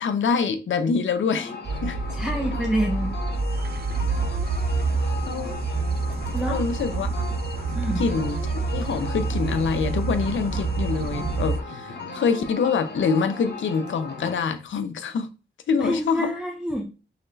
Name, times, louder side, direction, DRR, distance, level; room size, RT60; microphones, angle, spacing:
voice 1, 0.0-2.0 5.3-5.5 6.5-7.1 8.0-8.4 8.7-15.3 15.7-16.3, left 5 dB, 75° left, 0.6 m, -25 dB
sound 1, 1.3-14.4, left 4 dB, 60° left, 0.9 m, -37 dB
sound 2, 1.6-11.6, right 4 dB, 55° right, 0.4 m, -27 dB
voice 2, 2.1-3.2 6.3-6.6 7.7-8.0 15.8-16.8, equal, 5° right, 0.6 m, -27 dB
4.0 x 3.1 x 2.7 m
wide cardioid pair, 110°, 20 cm